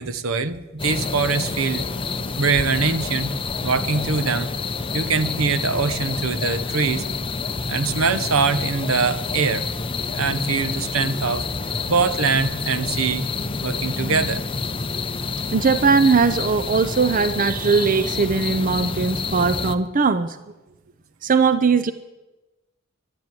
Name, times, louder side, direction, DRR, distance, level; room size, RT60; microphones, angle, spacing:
voice 1, 0.0-1.8 2.4-3.3 3.6-4.5 4.9-7.1 7.7-9.7 10.1-11.5 11.9-13.3 13.6-14.4, right 4 dB, 75° right, 13 dB, 0.9 m, -23 dB
sound 1, 0.8-19.8, left 4 dB, 25° left, 0.7 m, -28 dB
voice 2, 15.5-20.4 21.2-21.9, right 5 dB, 40° right, 12 dB, 0.5 m, -19 dB
12.5 x 11.5 x 9.2 m, 1.1 s
head